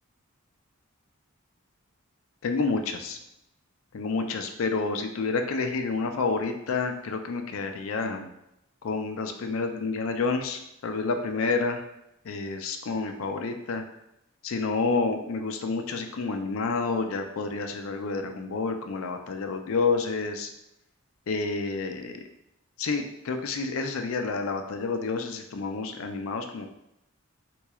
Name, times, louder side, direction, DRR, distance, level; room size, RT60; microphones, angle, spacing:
voice 1, 2.4-3.2 3.9-8.3 8.8-11.8 12.2-13.8 14.4-20.5 21.3-22.2 22.8-26.7, left 4 dB, 70° left, 6 dB, 0.4 m, -29 dB
3.7 x 3.0 x 2.3 m, 0.84 s
head